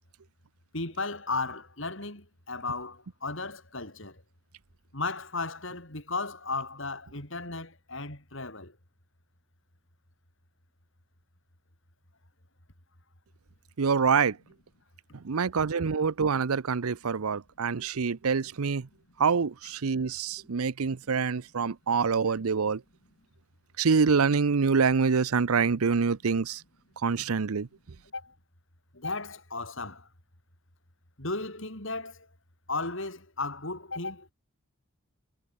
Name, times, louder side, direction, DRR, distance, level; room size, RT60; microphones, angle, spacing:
voice 1, 0.7-4.2 4.9-8.7 28.1-28.3 28.9-30.1 31.2-32.3 32.7-34.3, left 3 dB, 60° left, 5.4 m, -35 dB
voice 2, 13.8-14.4 15.2-18.9 19.2-22.8 23.8-26.6 27.0-27.7, right 5 dB, 85° right, 0.7 m, -26 dB
head